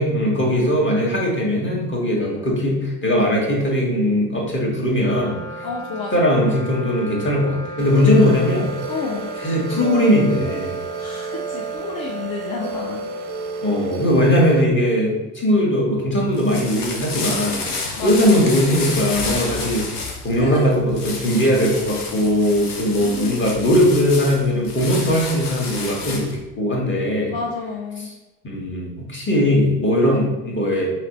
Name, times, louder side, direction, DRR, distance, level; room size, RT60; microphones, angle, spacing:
voice 1, 0.0-5.4 6.1-8.7 9.4-10.8 13.6-27.3 28.4-30.9, equal, 25° left, -3 dB, 1.6 m, -19 dB
Wind instrument woodwind instrument, 4.9-14.5, right 2 dB, 5° left, 1.5 m, -36 dB
voice 2, 5.6-6.5 8.2-8.4 8.9-9.3 11.0-13.1 17.9-18.4 20.3-20.7 23.0-23.6 27.3-28.1 30.0-30.2, left 4 dB, 50° left, -2 dB, 0.8 m, -31 dB
sound 1, 7.8-14.6, right 4 dB, 45° right, 0.5 m, -31 dB
sound 2, 16.2-26.4, left 3 dB, 80° left, 0.9 m, -30 dB
5.8 x 3.1 x 2.9 m, 1.0 s
figure-of-eight pair, 55°, 45 cm